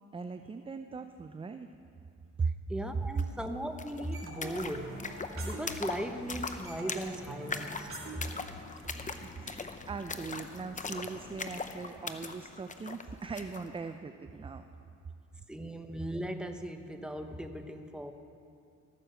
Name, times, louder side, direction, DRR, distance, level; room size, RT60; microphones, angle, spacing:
voice 1, 0.1-1.7 2.4-2.5 8.7-8.8 9.2-14.6, right 4 dB, 20° right, 8 dB, 0.4 m, -39 dB
voice 2, 2.7-5.0 5.3-7.9 15.5-18.1, right 1 dB, 5° right, 6 dB, 0.9 m, -38 dB
sound 1, 3.2-3.3 3.5-13.7, left 4 dB, 25° left, 0.8 m, -41 dB
sound 2, 4.1-6.1 6.3-9.1, right 3 dB, 45° right, 2.5 m, -45 dB
14.0 x 9.4 x 6.4 m, 2.4 s
cardioid pair, 90°, 30 cm